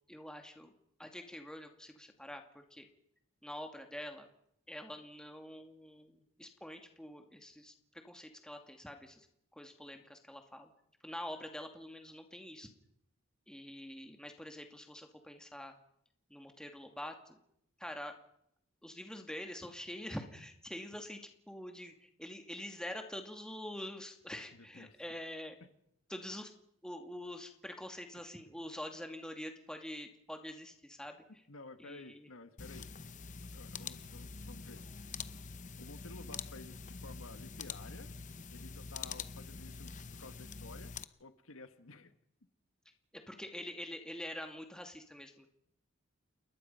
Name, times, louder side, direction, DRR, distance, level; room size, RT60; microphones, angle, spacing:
voice 1, 0.1-0.7 1.0-2.9 3.4-4.3 4.7-9.3 9.5-10.7 11.0-12.7 13.5-15.7 16.3-17.4 17.8-18.1 18.8-21.2 21.5-25.6 26.1-26.5 26.8-31.2 31.8-32.3 43.1-45.5, left 1 dB, 5° left, 4 dB, 2.3 m, -46 dB
voice 2, 24.5-25.0 31.5-32.9 33.5-34.8 35.8-38.1 38.5-40.9 41.2-42.1, left 2 dB, 85° left, 9 dB, 1.6 m, -53 dB
sound 1, 32.6-41.0, left 5 dB, 35° left, 0.8 m, -45 dB
28.5 x 21.0 x 5.6 m, 0.76 s
head